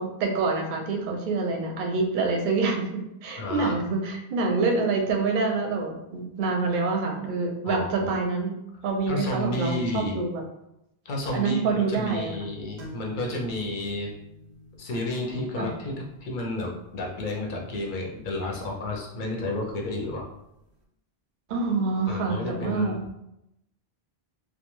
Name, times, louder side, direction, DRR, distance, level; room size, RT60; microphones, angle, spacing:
voice 1, 0.0-8.5 8.8-10.4 11.3-12.3 15.6-15.7 21.5-23.2, right 4 dB, 60° right, 1 dB, 0.6 m, -26 dB
voice 2, 3.4-3.8 7.6-8.1 9.1-10.2 11.0-14.1 14.8-15.9 16.2-20.3 22.1-23.0, left 1 dB, 55° left, 0 dB, 0.7 m, -31 dB
sound 1, 12.8-20.3, equal, 90° right, 0.9 m, -49 dB
2.3 x 2.2 x 3.0 m, 0.83 s
omnidirectional pair, 1.1 m